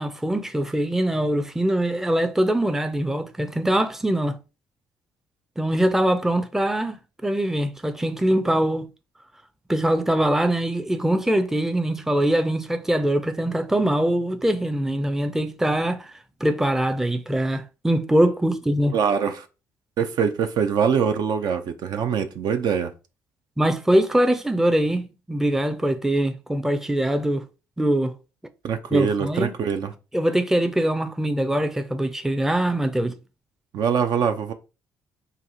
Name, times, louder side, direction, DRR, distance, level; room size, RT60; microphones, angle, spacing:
voice 1, 0.0-4.4 5.6-8.9 9.7-16.1 16.4-18.9 23.6-27.4 27.8-28.1 28.9-29.5 30.1-33.1, right 1 dB, 5° right, 0.5 m, -23 dB
voice 2, 18.9-19.5 20.0-22.9 28.6-29.9 33.7-34.5, right 7 dB, 60° right, 0.4 m, -23 dB
3.9 x 2.4 x 2.7 m
hypercardioid pair, 55°, 8 cm